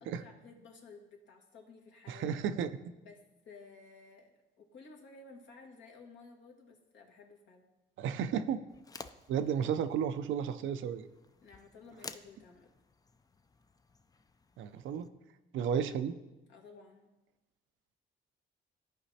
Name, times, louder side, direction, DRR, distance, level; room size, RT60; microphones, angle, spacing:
voice 1, 0.0-2.4 3.0-7.7 9.4-9.6 11.4-12.7 15.5-15.9 16.5-17.1, left 4 dB, 70° left, 0 dB, 1.7 m, -55 dB
voice 2, 2.1-2.9 8.0-8.6 9.3-11.1 14.6-15.1 15.5-16.2, right 8 dB, 80° right, 11 dB, 0.5 m, -33 dB
sound 1, 8.7-15.1, left 3 dB, 20° left, 0.4 m, -53 dB
14.5 x 5.0 x 2.8 m, 1.0 s
cardioid pair, 90°, 20 cm